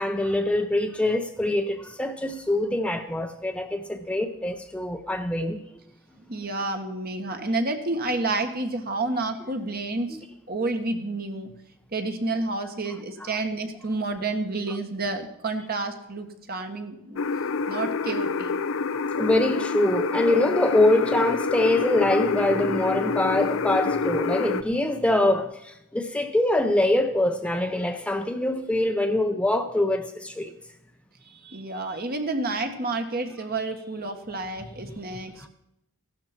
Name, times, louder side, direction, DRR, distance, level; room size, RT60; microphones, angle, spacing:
voice 1, 0.0-5.6 10.1-10.2 13.2-13.3 19.1-30.5 35.4-35.5, left 1 dB, 5° left, 0.7 m, -24 dB
voice 2, 6.3-10.2 10.5-11.5 11.9-17.2 17.7-18.5 31.3-35.5, right 2 dB, 45° right, 1.6 m, -30 dB
sound 1, 17.2-24.6, left 4 dB, 70° left, 0.5 m, -27 dB
15.5 x 12.0 x 4.4 m
head